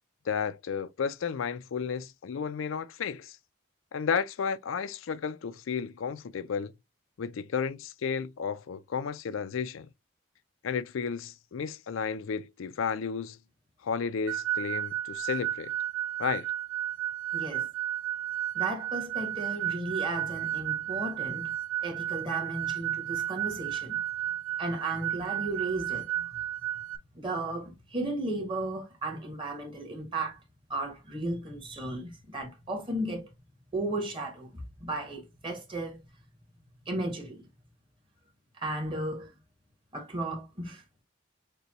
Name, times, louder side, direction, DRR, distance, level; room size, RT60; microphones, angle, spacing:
voice 1, 0.3-3.4 3.9-6.7 7.2-9.9 10.6-13.4 13.8-15.7 16.2-16.5, left 6 dB, 80° left, 0.4 m, -32 dB
sound 1, 14.3-27.0, right 12 dB, 90° right, 0.5 m, -33 dB
voice 2, 17.3-17.7 18.5-21.5 21.8-24.0 24.6-26.3 27.1-30.4 30.7-33.3 33.7-36.0 36.9-37.4 38.6-39.3 39.9-40.8, right 2 dB, 25° right, 1.3 m, -35 dB
6.7 x 2.2 x 2.9 m
head